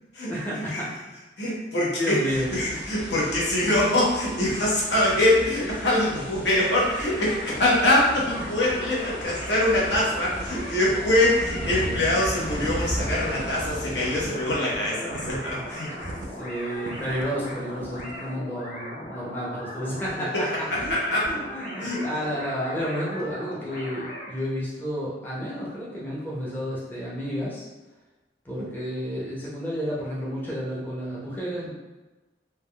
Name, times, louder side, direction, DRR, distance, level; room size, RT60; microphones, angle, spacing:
voice 1, 0.3-1.0 2.0-2.6 11.8-12.3 16.4-21.0 21.3-27.6 28.4-31.7, equal, 10° left, -7 dB, 0.5 m, -31 dB
voice 2, 1.4-2.2 2.5-15.9 20.3-21.3 21.8-22.0, left 1 dB, 80° left, -6 dB, 0.9 m, -24 dB
sound 1, 2.3-14.3, equal, 25° left, 1.3 m, -37 dB
sound 2, 6.5-24.3, left 1 dB, 50° left, 0.8 m, -38 dB
sound 3, 8.1-8.7 9.0-9.3 9.6-17.5 17.8-18.1, right 2 dB, 45° right, 0.3 m, -40 dB
3.3 x 2.3 x 2.2 m, 1.1 s
head